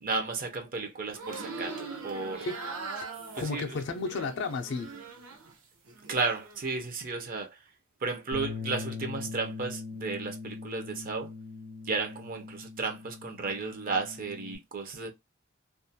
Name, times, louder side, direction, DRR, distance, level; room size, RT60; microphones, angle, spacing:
voice 1, 0.0-2.5 3.4-3.7 6.1-7.6 8.0-11.3 11.8-15.1, right 4 dB, 40° right, 0.5 m, -33 dB
sound 1, 1.1-5.5 5.9-6.6, right 4 dB, 80° right, 0.7 m, -41 dB
voice 2, 3.4-5.0, left 3 dB, 55° left, 0.4 m, -33 dB
Bass guitar, 8.3-14.6, left 4 dB, 65° right, 1.2 m, -41 dB
2.3 x 2.2 x 2.6 m
head